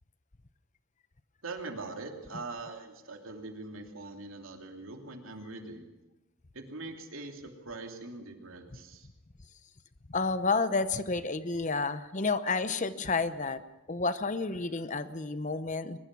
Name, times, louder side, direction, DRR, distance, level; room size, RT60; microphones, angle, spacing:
voice 1, 1.4-5.9 6.5-9.1, right 3 dB, 80° right, 3 dB, 3.0 m, -42 dB
voice 2, 10.1-13.6 13.9-16.0, left 3 dB, 35° left, 13 dB, 0.9 m, -30 dB
23.0 x 21.0 x 6.2 m, 1.0 s
head